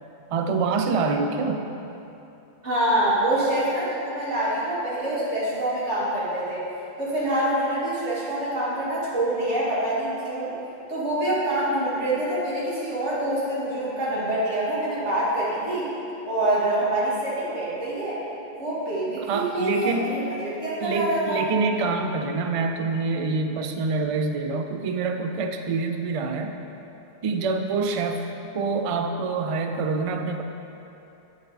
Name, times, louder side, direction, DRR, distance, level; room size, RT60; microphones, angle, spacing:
voice 1, 0.3-1.7 19.3-20.2 20.8-26.6 27.2-28.2 28.5-30.4, right 4 dB, 60° right, 5 dB, 0.3 m, -26 dB
voice 2, 2.6-6.7 7.0-10.5 10.9-15.9 16.3-18.2 18.5-21.4, right 1 dB, 90° right, -9 dB, 2.0 m, -26 dB
9.0 x 5.1 x 4.0 m, 2.9 s
omnidirectional pair, 1.2 m